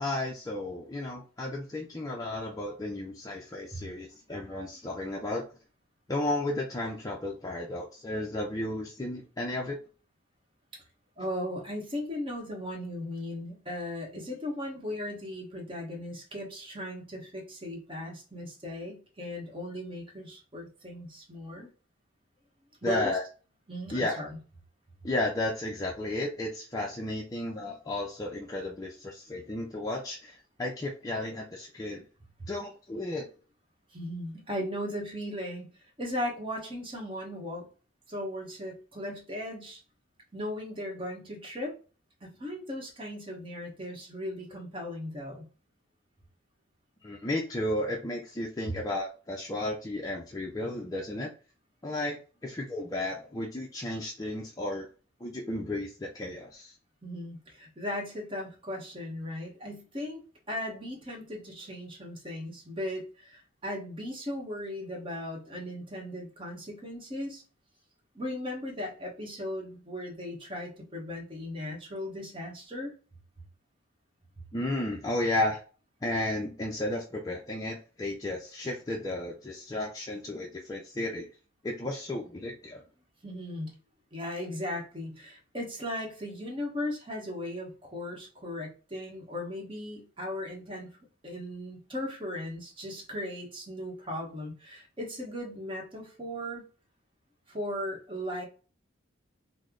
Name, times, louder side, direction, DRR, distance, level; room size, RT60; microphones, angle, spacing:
voice 1, 0.0-5.4 6.1-9.8 22.8-23.2 23.9-24.2 25.0-32.0 32.5-33.3 47.0-51.3 51.8-54.9 55.2-56.7 74.5-75.6 76.0-81.3 81.6-82.8, left 1 dB, 20° left, -2 dB, 0.4 m, -33 dB
voice 2, 11.2-21.7 22.8-23.1 23.7-24.4 33.9-35.7 36.0-37.7 38.1-39.8 40.3-41.7 42.2-45.4 57.0-60.2 60.5-67.4 68.1-72.9 83.2-83.7 84.1-90.9 91.2-96.6 97.5-98.4, left 1 dB, 25° right, -1 dB, 1.0 m, -37 dB
3.0 x 2.0 x 3.7 m, 0.36 s
head